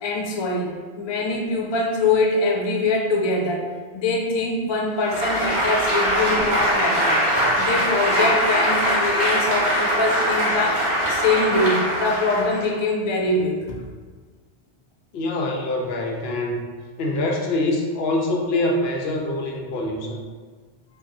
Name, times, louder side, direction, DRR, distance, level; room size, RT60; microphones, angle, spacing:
voice 1, 0.0-0.7 1.0-3.7 3.9-7.2 7.6-13.8, left 2 dB, 45° left, 0 dB, 0.3 m, -23 dB
Applause, 5.0-12.7, equal, 45° right, 1.1 m, -22 dB
voice 2, 15.1-16.6 17.0-20.2, left 2 dB, 75° left, 0 dB, 0.8 m, -24 dB
5.1 x 2.3 x 2.6 m, 1.5 s
omnidirectional pair, 1.1 m